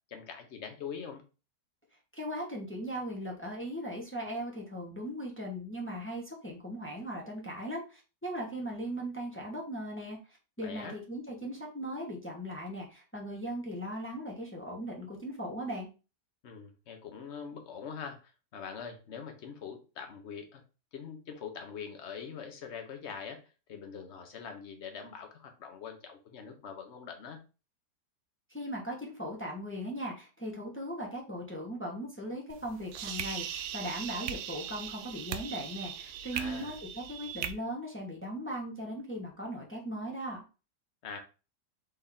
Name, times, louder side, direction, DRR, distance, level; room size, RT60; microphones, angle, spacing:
voice 1, 0.1-1.2 10.6-11.0 16.4-20.6 20.9-23.4 23.7-27.4 36.3-36.7 41.0-41.2, left 6 dB, 50° left, 5 dB, 1.0 m, -43 dB
voice 2, 2.2-10.2 10.6-15.9 28.5-40.4, equal, 10° left, -1 dB, 0.8 m, -38 dB
sound 1, 32.5-37.5, right 9 dB, 75° right, 1.1 m, -39 dB
4.1 x 3.4 x 3.6 m, 0.32 s
omnidirectional pair, 1.8 m